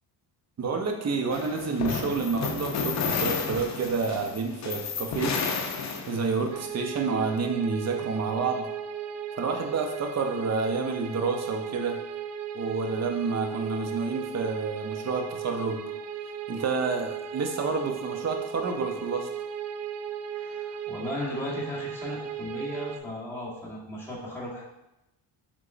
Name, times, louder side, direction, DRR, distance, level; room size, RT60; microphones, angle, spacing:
voice 1, 0.6-5.4 6.1-8.7 9.3-12.0 12.5-15.8 16.5-19.3, right 4 dB, 40° right, 4 dB, 0.6 m, -29 dB
sound 1, 1.3-6.5, left 5 dB, 40° left, 0.6 m, -31 dB
sound 2, 6.5-23.0, right 8 dB, 75° right, 0.5 m, -36 dB
voice 2, 20.3-24.6, left 1 dB, 5° left, -6 dB, 1.3 m, -36 dB
4.8 x 3.6 x 2.5 m, 0.91 s
cardioid pair, 105°, 43 cm